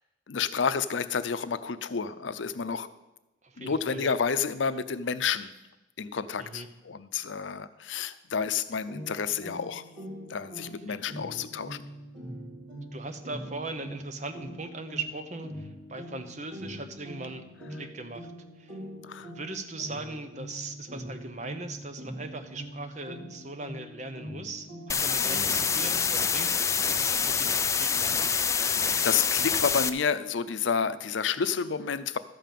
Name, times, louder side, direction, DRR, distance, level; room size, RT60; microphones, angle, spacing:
voice 1, 0.3-2.9 3.6-5.5 6.0-9.8 10.3-11.8 19.0-19.3 28.5-32.2, left 6 dB, 85° left, 13 dB, 0.6 m, -30 dB
voice 2, 3.4-4.1 6.4-6.7 10.6-11.0 12.9-17.4 17.7-18.3 18.6-18.8 19.2-26.5 26.9-28.1, right 3 dB, 40° right, 9 dB, 0.8 m, -39 dB
sound 1, 8.9-26.3, equal, 85° right, 4.0 m, -43 dB
sound 2, 24.9-29.9, left 6 dB, 15° left, 0.3 m, -26 dB
12.5 x 5.4 x 7.5 m, 1.0 s
head